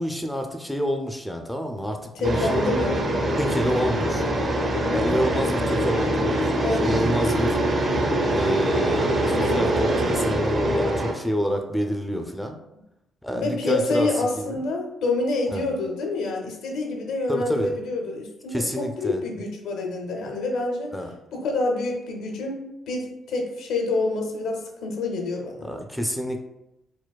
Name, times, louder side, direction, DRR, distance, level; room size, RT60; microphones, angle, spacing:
voice 1, 0.0-2.6 3.4-4.2 4.9-7.6 8.3-12.6 13.2-14.6 15.5-15.7 17.3-17.8 18.5-19.2 20.9-21.1 25.6-26.5, equal, 5° left, 4 dB, 0.4 m, -28 dB
voice 2, 2.2-3.0 6.6-7.0 13.3-21.0 21.3-25.7, left 2 dB, 80° left, 2 dB, 0.6 m, -27 dB
sound 1, 2.2-11.1, right 1 dB, 45° right, 0.6 m, -23 dB
4.4 x 2.2 x 2.3 m, 0.89 s
cardioid pair, 90°, 0 cm